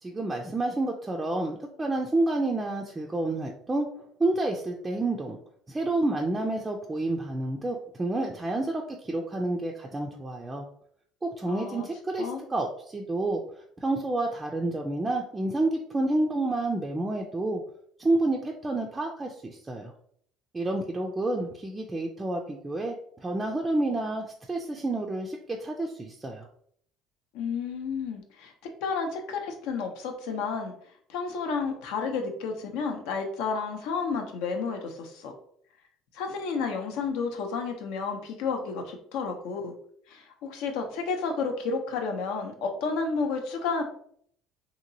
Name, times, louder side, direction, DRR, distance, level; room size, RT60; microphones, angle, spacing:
voice 1, 0.0-3.9 4.2-5.4 5.7-10.7 11.2-17.6 18.0-19.9 20.5-26.5, right 2 dB, 15° right, 1 dB, 0.3 m, -29 dB
voice 2, 11.5-11.9 12.2-12.4 27.3-28.5 28.8-30.7 31.1-35.3 36.1-39.7 40.1-43.8, left 5 dB, 80° left, 4 dB, 0.6 m, -31 dB
2.9 x 2.8 x 2.6 m, 0.63 s
cardioid pair, 120°, 0 cm